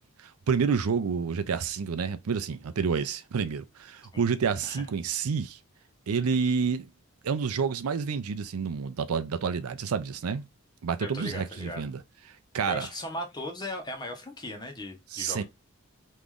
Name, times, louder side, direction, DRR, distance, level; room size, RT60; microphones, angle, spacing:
voice 1, 0.2-5.6 6.1-6.9 7.2-10.4 10.8-12.0 12.5-12.9 15.1-15.4, right 6 dB, 90° right, 0.5 m, -29 dB
voice 2, 11.0-11.9 12.7-15.4, left 1 dB, 20° left, 0.8 m, -37 dB
3.1 x 2.5 x 3.6 m
head